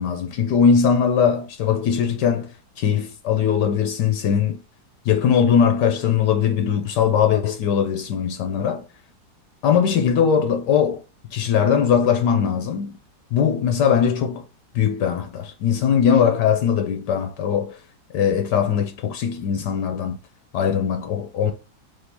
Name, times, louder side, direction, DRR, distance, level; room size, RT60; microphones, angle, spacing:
voice 1, 0.0-4.6 5.0-8.8 9.6-11.0 11.3-13.0 13.3-14.4 14.7-17.8 18.1-20.2 20.5-21.5, left 7 dB, 75° left, 1.2 m, -20 dB
3.7 x 3.2 x 2.8 m
omnidirectional pair, 1.9 m